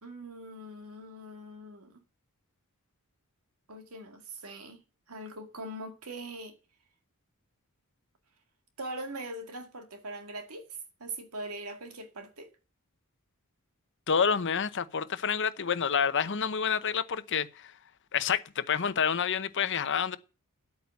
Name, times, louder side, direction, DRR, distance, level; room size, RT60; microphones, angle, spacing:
voice 1, 0.0-2.0 3.7-4.8 5.1-6.6 8.8-12.6, right 1 dB, 80° right, 2.1 m, -42 dB
voice 2, 14.1-17.7 18.1-20.2, left 7 dB, 55° left, 0.8 m, -28 dB
11.0 x 8.7 x 7.0 m
head